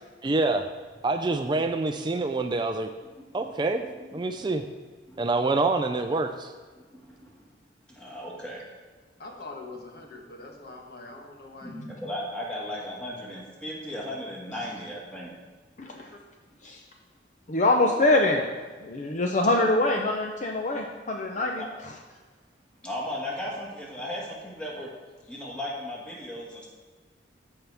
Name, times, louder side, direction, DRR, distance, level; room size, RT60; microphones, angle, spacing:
voice 1, 0.2-0.7 1.0-2.9 3.3-3.8 4.1-4.6 5.2-6.5, right 3 dB, 25° right, 7 dB, 0.4 m, -26 dB
voice 2, 4.0-4.5 5.1-5.3 6.9-7.3 7.9-8.6 11.6-15.3 19.0-19.3 21.6-21.7 22.8-24.9 25.3-26.7, left 1 dB, 5° left, -4 dB, 1.9 m, -36 dB
voice 3, 9.2-11.8 12.6-12.7 15.8-16.0, left 2 dB, 60° left, 1 dB, 1.3 m, -43 dB
voice 4, 17.5-18.5 18.8-21.6, left 2 dB, 45° left, 2 dB, 0.6 m, -24 dB
13.5 x 5.5 x 3.5 m, 1.4 s
head